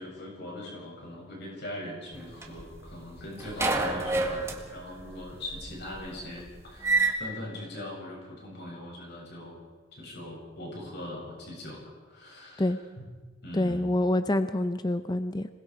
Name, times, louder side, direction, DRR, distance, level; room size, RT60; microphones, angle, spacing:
voice 1, 0.0-9.6 9.9-13.0 13.4-13.9, left 1 dB, 60° left, -2 dB, 7.4 m, -41 dB
sound 1, 2.1-3.1 3.4-7.1, right 3 dB, 15° right, 2.0 m, -28 dB
voice 2, 13.5-15.5, left 1 dB, 20° left, 10 dB, 0.6 m, -26 dB
26.5 x 20.5 x 4.8 m, 1.3 s
head